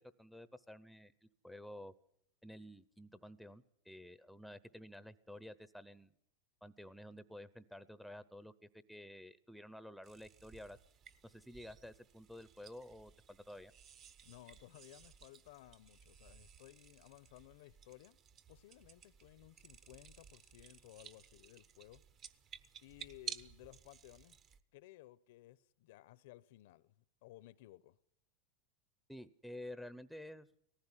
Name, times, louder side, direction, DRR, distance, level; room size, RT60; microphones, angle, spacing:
voice 1, 0.0-1.9 2.4-6.1 6.6-8.5 8.9-10.8 11.2-13.7 29.1-30.6, left 1 dB, ahead, 0.7 m, -51 dB
sound 1, 10.0-24.6, right 8 dB, 35° right, 1.0 m, -55 dB
voice 2, 14.2-18.2 18.5-22.0 22.8-24.4 24.7-26.9 27.2-28.0, left 16 dB, 70° left, 0.8 m, -58 dB
18.5 x 15.0 x 9.8 m
supercardioid pair, 135°, 0 cm